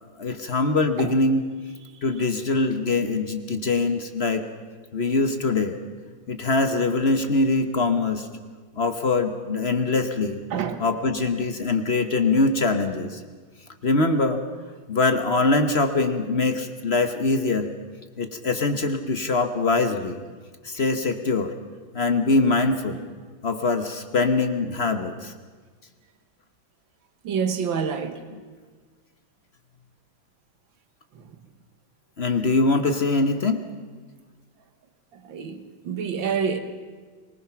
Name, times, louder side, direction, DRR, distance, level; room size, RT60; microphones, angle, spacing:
voice 1, 0.2-1.4 2.0-4.5 4.9-5.8 6.3-8.3 8.8-10.4 10.8-13.2 13.8-14.4 14.9-17.7 18.2-20.2 20.6-21.5 21.9-23.0 23.4-25.3 32.2-33.6, left 3 dB, 40° left, 1.1 m, -23 dB
voice 2, 10.5-10.8 27.2-28.2 35.3-36.6, right 6 dB, 70° right, 2.1 m, -27 dB
24.0 x 19.5 x 5.9 m
omnidirectional pair, 2.2 m